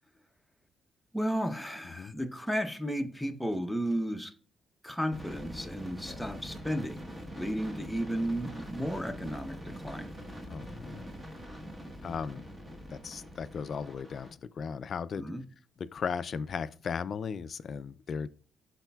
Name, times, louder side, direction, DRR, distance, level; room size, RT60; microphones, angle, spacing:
voice 1, 1.1-4.3 4.8-7.0 7.3-10.1 15.2-15.4, equal, ahead, 0.8 m, -33 dB
sound 1, 5.1-14.3, equal, 20° right, 1.2 m, -44 dB
voice 2, 10.5-11.1 12.0-12.5 12.9-15.3 15.8-18.3, left 6 dB, 50° left, 0.3 m, -36 dB
12.5 x 4.1 x 2.3 m
cardioid pair, 90°, 0 cm